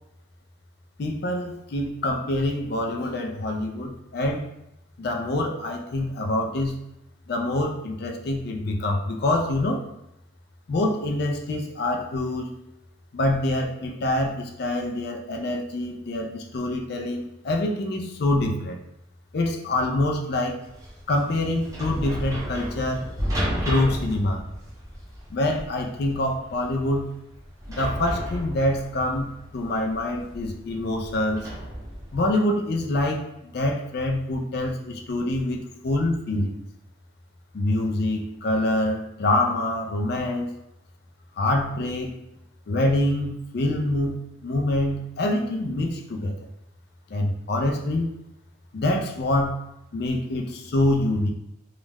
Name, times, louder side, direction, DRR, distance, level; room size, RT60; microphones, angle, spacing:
voice 1, 1.0-4.4 5.0-6.8 7.3-9.8 10.7-12.5 13.1-18.8 19.3-20.6 21.1-23.1 23.7-24.4 25.3-27.1 27.7-31.5 32.1-36.6 37.5-40.5 41.4-42.1 42.7-46.3 47.1-48.1 48.7-49.6 49.9-51.3, left 1 dB, 50° left, 2 dB, 0.3 m, -25 dB
sound 1, 20.6-32.3, equal, 15° right, 0.5 m, -33 dB
2.4 x 2.0 x 3.2 m, 0.86 s
head